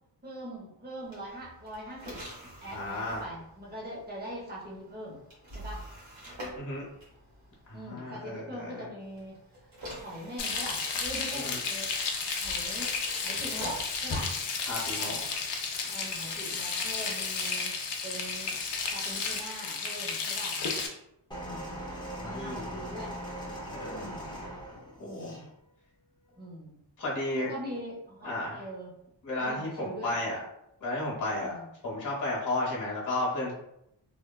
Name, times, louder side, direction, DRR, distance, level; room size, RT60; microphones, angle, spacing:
voice 1, 0.2-2.2 2.6-5.2 5.5-5.8 7.7-9.7 9.9-11.9 12.4-12.9 13.2-14.3 14.9-15.3 15.9-17.8 18.0-18.6 18.9-20.6 21.4-23.1 23.9-24.3 25.0-25.4 26.4-26.8 27.4-28.9 29.4-30.1 31.4-31.7, equal, 20° right, -4 dB, 0.7 m, -42 dB
sound 1, 1.0-7.9 9.0-19.5, equal, 80° right, 1.2 m, -49 dB
voice 2, 2.7-3.2 6.5-6.9 7.7-8.8 11.4-11.6 14.7-15.2 22.2-23.0 23.7-24.1 25.0-25.4 27.0-27.5 28.2-28.6 29.2-30.4 30.8-31.5 31.8-33.5, left 2 dB, 40° left, -4 dB, 0.9 m, -33 dB
Frying (food), 10.4-20.9, left 4 dB, 65° left, 0.5 m, -33 dB
sound 2, 21.3-25.4 26.3-26.4, equal, 10° left, 0.5 m, -40 dB
3.2 x 2.1 x 2.2 m, 0.79 s
wide cardioid pair, 170°, 46 cm